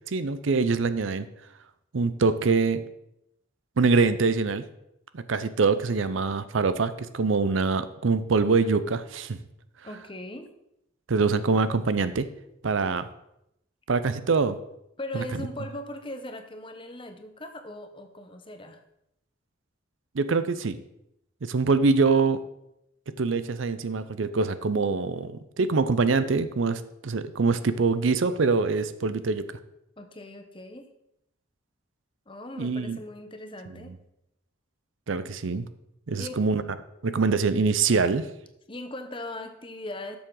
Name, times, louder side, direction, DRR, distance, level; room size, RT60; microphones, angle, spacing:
voice 1, 0.1-1.3 1.9-2.9 3.8-4.6 5.1-9.4 11.1-12.3 12.6-13.1 13.9-14.6 15.1-15.2 20.1-20.8 21.4-22.4 23.2-29.5 32.6-33.0 35.1-35.7 36.1-36.6 37.0-38.3, right 4 dB, 75° right, 13 dB, 0.6 m, -24 dB
voice 2, 9.8-10.5 15.0-18.8 30.0-30.9 32.3-34.0 36.2-36.4 38.7-40.2, left 1 dB, 25° left, 7 dB, 0.9 m, -39 dB
12.5 x 7.0 x 3.8 m, 0.82 s
head